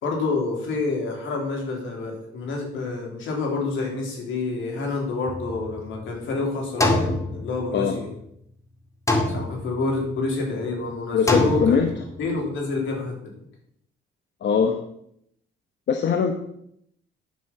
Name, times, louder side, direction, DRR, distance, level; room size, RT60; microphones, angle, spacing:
voice 1, 0.0-8.1 9.3-11.8 12.2-13.1, left 3 dB, 80° left, 1 dB, 3.3 m, -28 dB
sound 1, 5.3-6.2 6.8-8.1 9.1-10.0 11.3-12.2, left 2 dB, 15° left, 2.0 m, -25 dB
voice 2, 11.1-11.9 14.4-14.8 15.9-16.3, left 6 dB, 60° left, 5 dB, 1.1 m, -21 dB
9.5 x 6.5 x 5.9 m, 0.73 s
cardioid pair, 90°, 20 cm